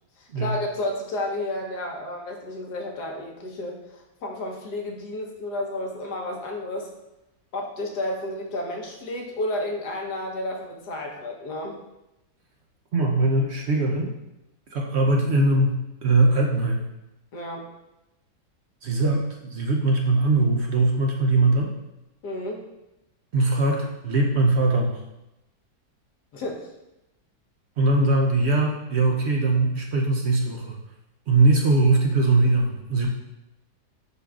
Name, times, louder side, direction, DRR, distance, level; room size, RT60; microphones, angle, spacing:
voice 1, 0.2-6.9 7.5-11.8 17.3-17.7 22.2-22.7 26.3-26.7, left 1 dB, 85° left, 0 dB, 1.6 m, -31 dB
voice 2, 12.9-14.1 14.7-16.8 18.8-21.7 23.3-25.0 27.8-30.8 31.3-33.1, right 2 dB, 60° right, 0 dB, 0.7 m, -21 dB
10.5 x 3.7 x 2.3 m, 0.94 s
omnidirectional pair, 1.7 m